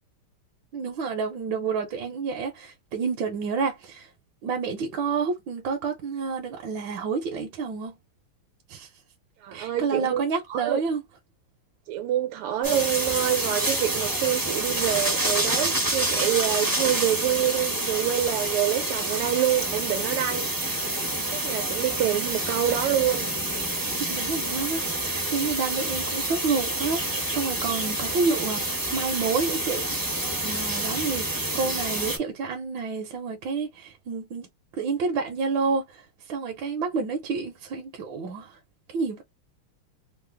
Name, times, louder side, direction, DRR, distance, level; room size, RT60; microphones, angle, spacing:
voice 1, 0.7-4.1 4.4-8.0 8.7-8.9 9.5-11.0 24.1-30.0 30.4-34.5 34.8-38.6 38.9-39.2, right 5 dB, 70° right, 1.3 m, -29 dB
voice 2, 9.4-10.2 10.5-10.8 11.9-20.5 21.3-23.3, right 11 dB, 85° right, 1.5 m, -26 dB
sound 1, 12.6-32.2, right 1 dB, 25° right, 0.4 m, -28 dB
3.8 x 2.0 x 3.3 m
omnidirectional pair, 2.4 m